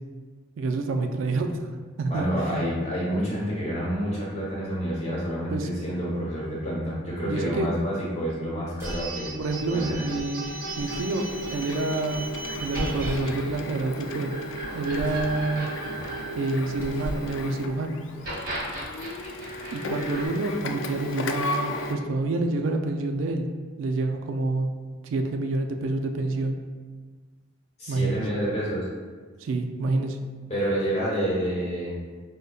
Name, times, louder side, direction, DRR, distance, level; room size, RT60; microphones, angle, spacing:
voice 1, 0.6-1.6 2.0-2.7 5.5-5.7 7.3-7.7 9.4-12.3 12.6-14.3 14.7-15.7 16.4-18.0 19.7-23.5 23.8-24.7 25.0-26.6 27.9-28.2 29.4-30.2, right 2 dB, 85° right, 5 dB, 0.3 m, -28 dB
voice 2, 2.1-9.4 9.7-10.1 27.8-28.9 30.5-32.0, equal, 35° left, -6 dB, 1.0 m, -28 dB
sound 1, 8.7-9.2 10.6-11.2 12.7-13.3 14.9-15.4 16.6-17.4, equal, 15° right, 0.9 m, -37 dB
sound 2, 8.8-17.3 18.1-20.3, right 1 dB, 45° right, 0.9 m, -36 dB
Printer, 9.5-21.9, equal, 70° left, 0.3 m, -35 dB
5.0 x 2.1 x 2.3 m, 1.5 s
head